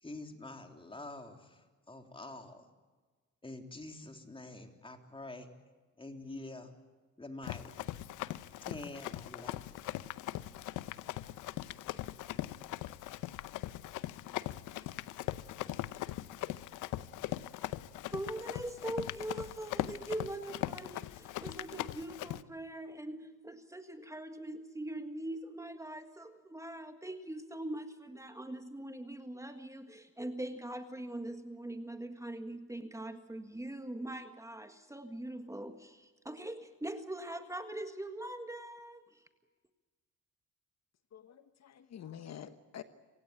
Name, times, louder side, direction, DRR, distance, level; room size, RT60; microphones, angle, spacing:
voice 1, 0.0-2.7 3.4-5.5 6.0-6.7 7.2-7.7 8.7-10.0, left 2 dB, 15° left, 5 dB, 3.4 m, -47 dB
Run, 7.4-22.4, left 14 dB, 90° left, 0.8 m, -40 dB
voice 2, 18.1-39.2, right 1 dB, 10° right, 7 dB, 1.7 m, -42 dB
voice 3, 41.1-42.8, left 9 dB, 60° left, 10 dB, 1.3 m, -48 dB
27.5 x 16.5 x 8.8 m, 1.4 s
cardioid pair, 90°, 30 cm